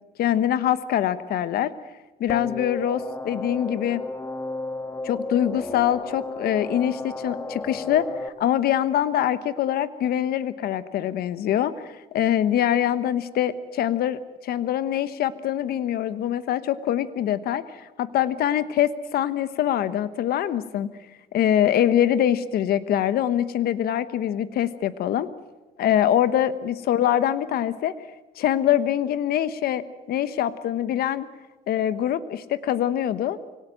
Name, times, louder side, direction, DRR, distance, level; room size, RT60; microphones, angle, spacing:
voice 1, 0.2-1.7 2.2-4.0 5.0-20.9 21.3-25.3 25.8-27.9 28.4-29.8 30.1-31.3 31.7-33.4, left 11 dB, 65° left, 14 dB, 1.1 m, -24 dB
sound 1, 2.3-8.3, left 2 dB, 15° left, 1.7 m, -33 dB
24.0 x 18.0 x 9.0 m, 1.1 s
cardioid pair, 110°, 17 cm